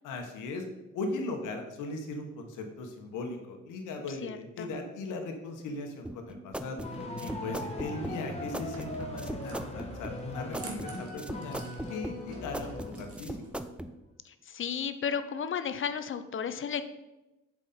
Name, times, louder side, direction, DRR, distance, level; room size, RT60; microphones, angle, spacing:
voice 1, 0.0-0.6 0.9-6.8 7.2-11.6 11.9-13.4, left 2 dB, 85° left, 4 dB, 1.2 m, -38 dB
voice 2, 4.1-4.8 14.2-16.8, left 7 dB, 45° left, 11 dB, 0.6 m, -34 dB
sound 1, 6.0-13.9, right 1 dB, 5° right, 0.4 m, -39 dB
sound 2, 6.8-13.3, left 2 dB, 20° left, 1.5 m, -40 dB
sound 3, 8.4-13.5, right 2 dB, 50° right, 1.4 m, -48 dB
7.5 x 4.9 x 4.2 m, 1.0 s
cardioid pair, 90°, 30 cm